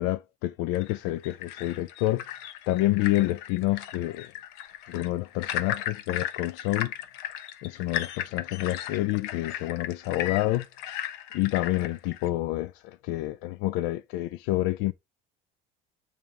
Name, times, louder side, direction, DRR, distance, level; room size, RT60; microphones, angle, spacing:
voice 1, 0.0-2.2 2.7-4.3 4.9-6.9 7.6-10.7 11.3-14.9, left 17 dB, 70° left, 0.4 m, -28 dB
sound 1, 0.7-12.3, left 11 dB, 90° left, 0.9 m, -36 dB
8.9 x 3.4 x 3.6 m
cardioid pair, 180°, 18 cm